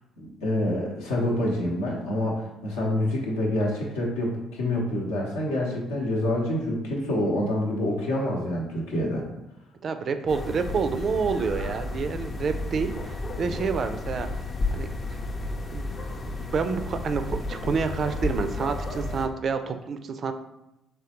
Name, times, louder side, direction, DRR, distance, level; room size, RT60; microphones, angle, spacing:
voice 1, 0.2-9.2, left 1 dB, 75° left, -2 dB, 0.7 m, -27 dB
voice 2, 9.8-14.3 14.7-15.2 15.7-15.9 16.4-20.3, right 5 dB, 45° right, 8 dB, 0.3 m, -28 dB
sound 1, 10.3-19.3, left 2 dB, 35° left, 0.5 m, -32 dB
3.7 x 3.2 x 2.9 m, 0.90 s
figure-of-eight pair, 50°, 0 cm